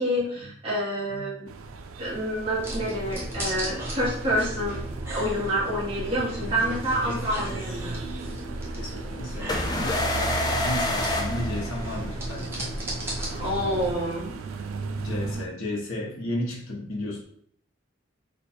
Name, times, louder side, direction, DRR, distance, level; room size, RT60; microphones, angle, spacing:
voice 1, 0.0-1.5 2.0-4.8 5.1-7.9 13.4-14.3, equal, 25° right, -8 dB, 1.4 m, -28 dB
sound 1, 1.5-15.5, right 4 dB, 85° right, 0.4 m, -37 dB
sound 2, 2.6-13.9, right 1 dB, 10° right, 0.7 m, -35 dB
voice 2, 7.0-7.6 8.1-8.2 8.5-12.7 13.4-13.9 14.9-17.2, left 1 dB, 85° left, -2 dB, 0.9 m, -34 dB
sound 3, 9.5-12.3, left 1 dB, 20° left, 0.3 m, -28 dB
3.2 x 2.3 x 4.3 m, 0.65 s
head